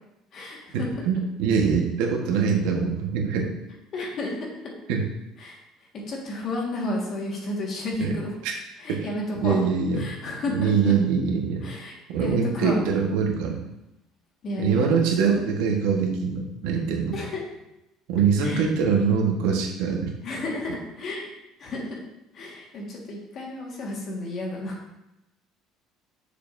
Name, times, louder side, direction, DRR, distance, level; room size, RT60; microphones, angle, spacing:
voice 1, 0.3-1.1 3.9-4.7 5.4-8.3 8.8-9.6 9.9-10.9 11.6-11.9 12.2-12.8 14.4-14.9 15.3-15.4 17.1-17.4 18.4-18.7 20.2-21.3 21.6-22.0 22.3-24.8, left 2 dB, 40° left, -1 dB, 1.6 m, -32 dB
voice 2, 1.0-3.5 4.9-5.0 8.0-8.1 8.4-8.5 8.9-9.0 9.4-10.0 10.5-11.6 12.1-13.6 14.6-17.1 18.1-20.1, right 6 dB, 90° right, 1 dB, 1.3 m, -23 dB
7.3 x 6.7 x 2.6 m, 0.90 s
cardioid pair, 160°, 0 cm